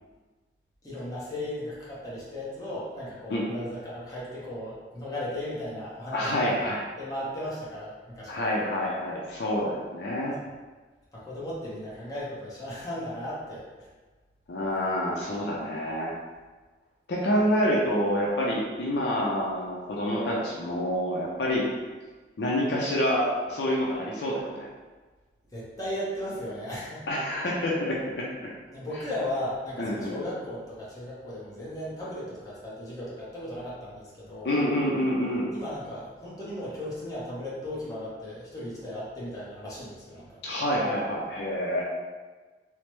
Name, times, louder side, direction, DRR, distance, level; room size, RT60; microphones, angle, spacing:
voice 1, 0.8-8.5 11.1-13.9 25.5-27.0 28.7-34.7 35.5-40.4, left 1 dB, 20° left, -8 dB, 0.8 m, -36 dB
voice 2, 6.1-6.8 8.3-10.3 14.5-16.1 17.1-21.6 22.4-24.7 27.1-28.3 29.8-30.2 34.4-35.5 40.4-41.8, equal, 65° left, -4 dB, 0.5 m, -27 dB
3.2 x 2.0 x 2.9 m, 1.3 s
head